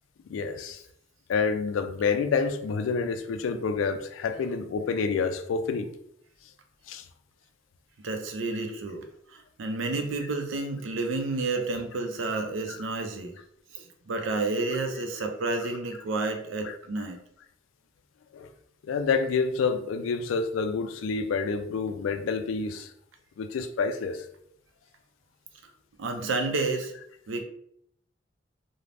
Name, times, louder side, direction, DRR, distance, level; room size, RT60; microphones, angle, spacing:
voice 1, 0.3-0.8 1.3-5.9 6.9-7.0 18.3-18.5 18.8-22.9 23.4-24.2, left 5 dB, 85° left, 0.3 m, -28 dB
voice 2, 8.0-13.3 13.7-17.2 26.0-26.9 27.3-27.4, right 3 dB, 75° right, 0.5 m, -30 dB
2.5 x 2.0 x 3.2 m
head